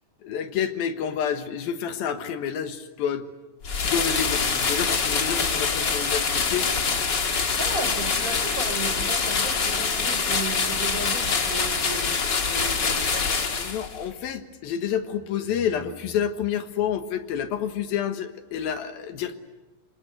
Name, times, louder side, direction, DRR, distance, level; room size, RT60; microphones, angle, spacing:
voice 1, 0.2-3.3 3.8-6.7 13.5-19.3, left 8 dB, 75° left, 8 dB, 3.2 m, -29 dB
sound 1, 3.6-14.0, left 5 dB, 40° left, 1.8 m, -25 dB
voice 2, 7.6-13.3, right 3 dB, 25° right, 5 dB, 4.4 m, -35 dB
28.0 x 24.5 x 7.9 m, 1.0 s
omnidirectional pair, 4.3 m